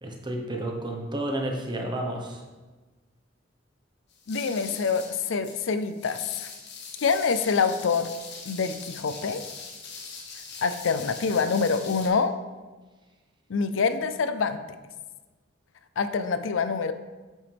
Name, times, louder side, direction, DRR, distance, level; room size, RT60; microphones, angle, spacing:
voice 1, 0.0-2.4, right 1 dB, 25° right, 2 dB, 1.1 m, -31 dB
sound 1, 4.1-12.1, left 5 dB, 60° left, 1.3 m, -42 dB
voice 2, 4.3-6.5 7.0-8.1 8.5-9.4 10.6-12.4 13.5-14.6 16.0-16.9, left 5 dB, 75° left, 11 dB, 0.5 m, -26 dB
9.0 x 5.7 x 3.5 m, 1.2 s
head